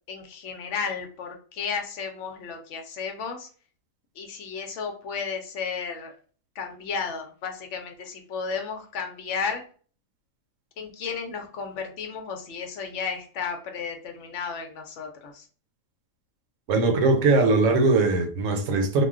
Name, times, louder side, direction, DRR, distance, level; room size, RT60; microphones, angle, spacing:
voice 1, 0.1-3.5 4.2-6.2 6.6-9.6 10.8-15.5, left 5 dB, 65° left, 0.9 m, -33 dB
voice 2, 16.7-19.0, right 3 dB, 70° right, 1.0 m, -20 dB
2.4 x 2.2 x 3.5 m
omnidirectional pair, 1.4 m